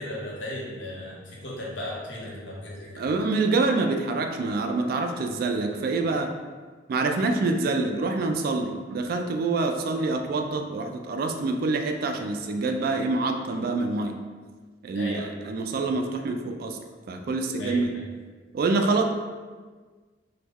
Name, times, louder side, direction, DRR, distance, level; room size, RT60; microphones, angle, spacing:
voice 1, 0.0-3.0 14.9-15.3 17.6-17.8, left 1 dB, 75° left, -4 dB, 0.8 m, -36 dB
voice 2, 3.0-6.3 6.9-14.1 14.8-16.8 17.1-17.9 18.5-19.0, right 3 dB, 55° right, 4 dB, 0.3 m, -26 dB
3.1 x 2.2 x 3.5 m, 1.4 s
head